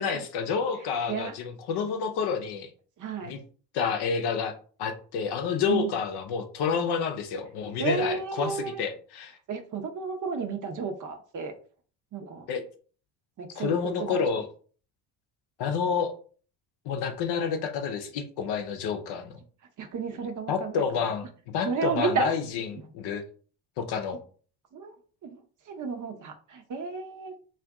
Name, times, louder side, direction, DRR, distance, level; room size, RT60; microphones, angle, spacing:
voice 1, 0.0-2.7 3.2-3.4 3.7-4.5 4.8-9.4 12.5-12.6 13.6-14.4 15.6-16.1 16.8-19.4 20.5-23.2 23.8-24.2, left 6 dB, 55° left, 6 dB, 0.7 m, -29 dB
voice 2, 3.0-3.3 5.6-5.9 7.8-8.8 9.5-11.5 12.1-12.5 13.4-14.2 19.8-21.1 21.6-22.3 24.7-24.9 25.2-25.4 25.7-27.3, right 5 dB, 40° right, 5 dB, 0.8 m, -32 dB
2.5 x 2.5 x 3.5 m, 0.41 s
hypercardioid pair, 70°, 48 cm